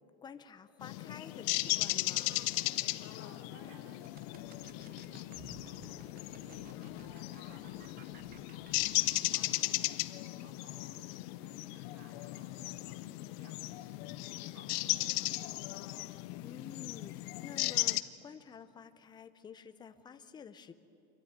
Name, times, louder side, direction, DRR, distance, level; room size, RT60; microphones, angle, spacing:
voice 1, 0.2-2.5 16.4-20.7, left 7 dB, 10° left, 10 dB, 0.5 m, -50 dB
sound 1, 0.8-18.0, left 19 dB, 55° left, 0.7 m, -36 dB
voice 2, 3.1-15.4, right 2 dB, 55° right, 1 dB, 3.7 m, -61 dB
sound 2, 4.0-9.2, right 5 dB, 25° right, 0.9 m, -57 dB
25.0 x 13.0 x 9.3 m, 2.7 s
supercardioid pair, 155°, 36 cm